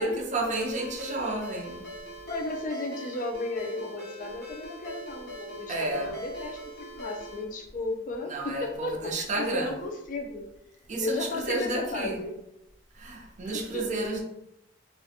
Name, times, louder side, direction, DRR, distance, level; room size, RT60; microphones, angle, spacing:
voice 1, 0.0-1.9 5.7-6.1 8.3-9.7 10.9-12.2 12.9-14.2, right 2 dB, 40° right, 0.4 m, -31 dB
Ringtone, 0.6-7.4, equal, 60° left, 0.9 m, -41 dB
voice 2, 2.2-10.5 11.0-12.3 13.5-13.9, left 2 dB, 45° left, 0.3 m, -34 dB
2.4 x 2.1 x 2.7 m
head